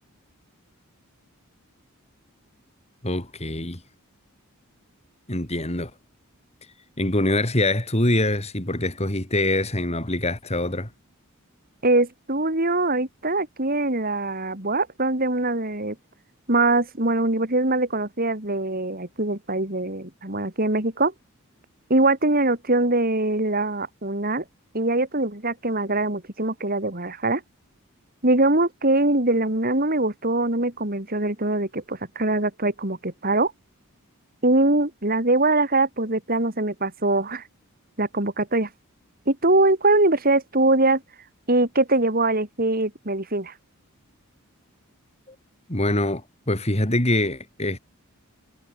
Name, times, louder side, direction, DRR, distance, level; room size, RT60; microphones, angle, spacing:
voice 1, 3.0-3.8 5.3-5.9 7.0-10.9 45.7-47.8, left 1 dB, 30° left, 3.9 m, -24 dB
voice 2, 11.8-16.0 16.5-21.1 21.9-24.4 24.7-27.4 28.2-33.5 34.4-37.4 38.0-38.7 39.3-41.0 41.5-43.5, right 2 dB, 40° right, 4.0 m, -22 dB
head